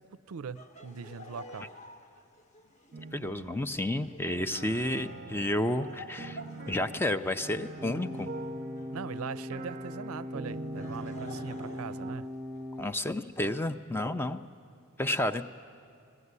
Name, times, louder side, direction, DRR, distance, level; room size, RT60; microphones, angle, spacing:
voice 1, 0.0-1.7 8.9-12.3, right 6 dB, 75° right, 15 dB, 0.4 m, -41 dB
Laughter, 0.5-9.6 10.5-12.8, left 1 dB, 35° left, 1.0 m, -51 dB
sound 1, 2.9-12.2, right 3 dB, 40° right, 0.7 m, -44 dB
voice 2, 3.1-6.4 6.7-8.3 12.8-14.4 15.0-15.4, left 1 dB, 10° left, 9 dB, 0.4 m, -31 dB
sound 2, 7.8-12.8, left 1 dB, 10° right, 0.8 m, -40 dB
20.5 x 15.5 x 9.6 m, 2.4 s
head